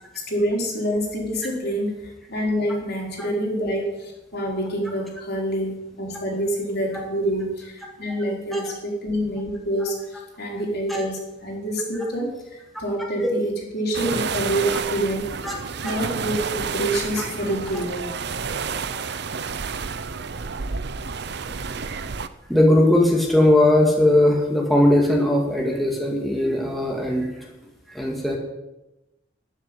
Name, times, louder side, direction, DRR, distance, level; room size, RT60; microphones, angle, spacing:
voice 1, 0.1-10.0 10.4-15.3 15.8-18.1, equal, 60° left, -1 dB, 4.2 m, -27 dB
sound 1, 13.9-22.3, right 5 dB, 65° right, 0.7 m, -30 dB
voice 2, 22.5-27.3 27.9-28.4, left 1 dB, ahead, -1 dB, 2.0 m, -19 dB
13.0 x 7.4 x 9.8 m, 0.99 s
head